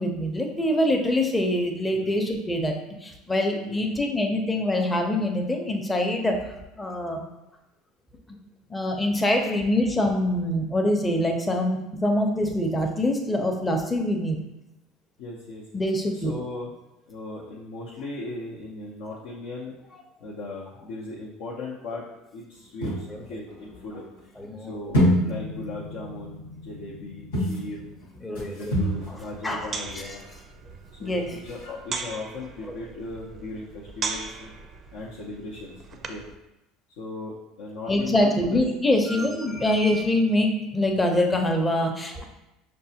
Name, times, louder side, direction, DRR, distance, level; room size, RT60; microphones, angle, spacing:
voice 1, 0.0-6.4 6.8-7.2 8.7-14.4 15.7-16.3 24.4-24.8 28.2-28.7 29.4-29.7 30.0-30.2 31.0-31.3 37.9-42.2, left 1 dB, 15° left, 2 dB, 0.6 m, -24 dB
voice 2, 15.2-15.7 16.1-16.7 17.1-19.7 20.2-22.0 22.3-24.0 24.6-27.9 28.3-30.2 30.9-34.5 34.9-35.7 36.1-36.2 37.0-38.6 39.1-39.5, left 2 dB, 70° left, -6 dB, 0.6 m, -37 dB
sound 1, 22.8-24.2 24.9-30.0 30.3-30.4 30.7-30.8 31.1-31.2 31.3-31.7, equal, 85° left, 1.1 m, -28 dB
sound 2, 28.8-36.4, right 4 dB, 40° right, 0.4 m, -38 dB
5.2 x 2.1 x 2.8 m, 0.94 s
hypercardioid pair, 85°, 0 cm